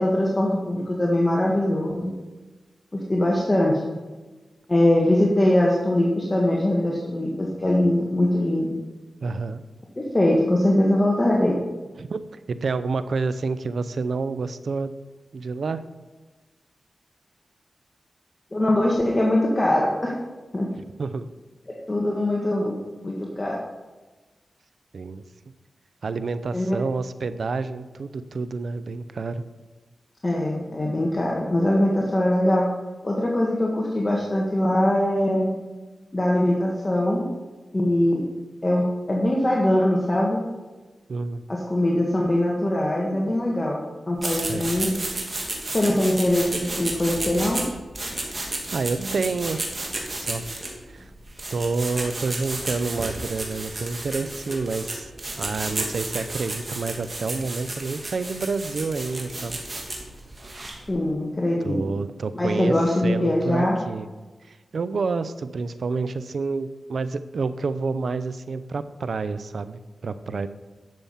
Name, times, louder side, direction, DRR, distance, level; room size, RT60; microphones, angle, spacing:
voice 1, 0.0-2.1 2.9-3.8 4.7-8.7 10.0-11.5 18.5-20.1 20.5-20.7 21.7-22.7 23.0-23.6 26.5-26.8 30.2-32.7 33.0-35.5 36.1-37.2 37.7-38.2 38.6-40.4 41.5-44.9 45.7-47.6 60.9-61.8 62.4-63.8, left 1 dB, 30° left, -2 dB, 1.6 m, -22 dB
voice 2, 9.2-9.6 12.0-14.9 15.3-15.8 20.8-21.3 24.9-25.2 26.0-29.4 41.1-41.4 44.3-44.7 48.3-49.6 50.2-50.4 50.9-51.1 51.5-55.1 55.4-59.6 61.6-62.8 63.0-64.1 64.4-70.5, right 4 dB, 75° right, 12 dB, 0.6 m, -29 dB
sound 1, 44.2-60.9, right 2 dB, 40° right, 2.5 m, -32 dB
10.5 x 7.1 x 5.7 m, 1.2 s
cardioid pair, 55°, 0 cm